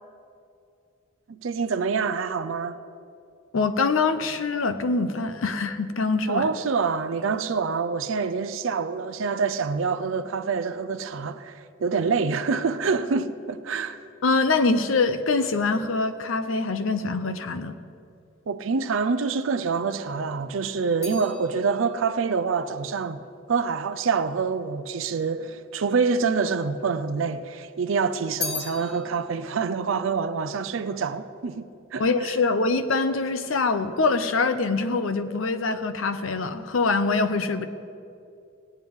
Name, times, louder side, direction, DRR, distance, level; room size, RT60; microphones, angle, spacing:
voice 1, 1.3-2.8 6.3-14.0 18.5-23.2 23.5-32.3, right 5 dB, 80° right, 0.5 m, -26 dB
voice 2, 3.5-6.5 14.2-17.8 32.0-37.7, left 3 dB, 80° left, 0.7 m, -24 dB
sound 1, 20.0-24.5 25.2-26.1 26.3-27.5 27.8-31.3 31.6-32.1, left 5 dB, 50° left, 3.3 m, -40 dB
18.0 x 9.4 x 3.6 m
head